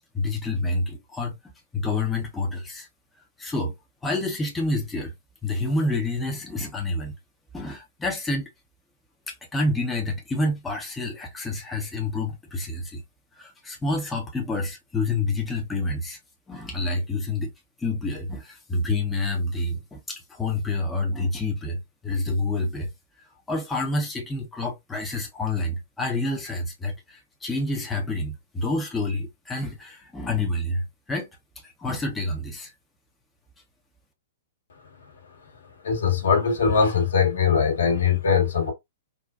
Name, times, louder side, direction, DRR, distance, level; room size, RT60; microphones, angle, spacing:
voice 1, 0.1-2.9 3.4-3.8 4.0-5.1 5.4-7.1 7.5-8.5 9.3-13.0 13.3-16.2 16.5-17.5 17.8-22.9 23.2-31.3 31.6-32.7, left 2 dB, 10° left, 0.7 m, -28 dB
voice 2, 35.8-38.7, left 6 dB, 65° left, 1.2 m, -21 dB
4.0 x 2.2 x 2.3 m
figure-of-eight pair, 110°, 0 cm